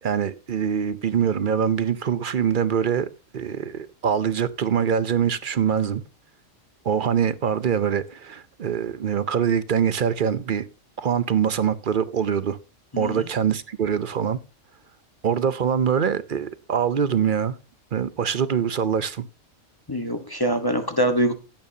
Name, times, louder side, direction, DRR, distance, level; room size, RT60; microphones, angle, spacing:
voice 1, 0.0-3.1 3.3-6.0 6.8-10.6 11.0-12.6 13.0-14.4 15.2-17.6 17.9-19.2, right 8 dB, 50° right, 0.7 m, -24 dB
voice 2, 19.9-21.3, right 1 dB, 20° left, 1.2 m, -24 dB
16.0 x 9.1 x 2.8 m
omnidirectional pair, 1.4 m